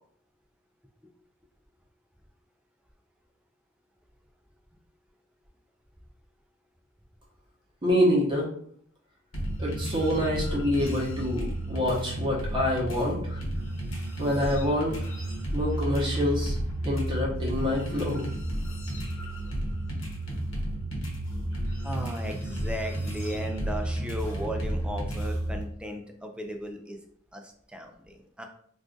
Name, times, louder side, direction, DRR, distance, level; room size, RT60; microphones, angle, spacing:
voice 1, 7.8-8.5 9.6-13.4 14.2-15.0 15.5-16.6 16.8-18.3, left 1 dB, 25° right, -5 dB, 0.9 m, -26 dB
sound 1, 9.3-25.6, right 1 dB, 75° left, 1.0 m, -32 dB
voice 2, 21.8-27.0 27.3-28.4, equal, 5° right, 3 dB, 0.3 m, -36 dB
2.4 x 2.4 x 3.7 m, 0.62 s
head